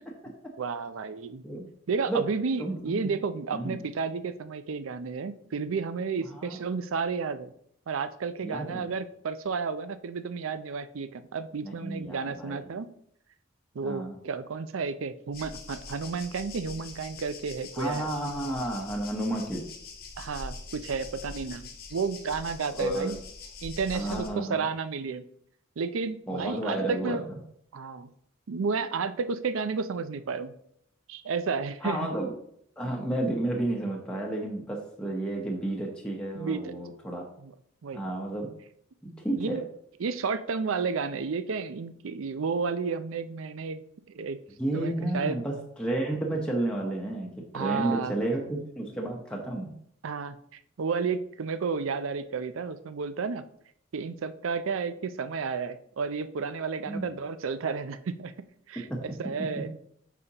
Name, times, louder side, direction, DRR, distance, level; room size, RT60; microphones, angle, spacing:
voice 1, 0.6-1.4 1.9-7.5 7.9-12.9 13.7-18.1 20.2-23.2 23.6-25.2 25.8-27.2 27.7-28.1 28.5-30.5 31.1-32.1 36.3-36.7 37.4-37.5 37.8-38.0 39.3-39.6 40.0-43.8 44.1-44.4 44.7-45.4 47.5-48.1 50.0-53.4 53.9-58.3 58.7-59.7, right 5 dB, 80° right, 12 dB, 0.5 m, -32 dB
voice 2, 2.6-3.1 3.5-3.9 6.2-6.6 8.4-8.9 11.6-12.7 13.8-14.2 17.7-19.6 22.7-23.1 23.9-24.6 26.3-27.4 31.8-32.3 32.8-37.2 37.9-38.5 39.0-39.6 44.6-49.7 56.9-57.1 58.8-59.0 59.6-59.7, right 1 dB, 5° left, -2 dB, 0.9 m, -31 dB
sound 1, 15.3-24.3, left 3 dB, 45° left, 1.0 m, -43 dB
8.4 x 5.1 x 2.9 m, 0.69 s
head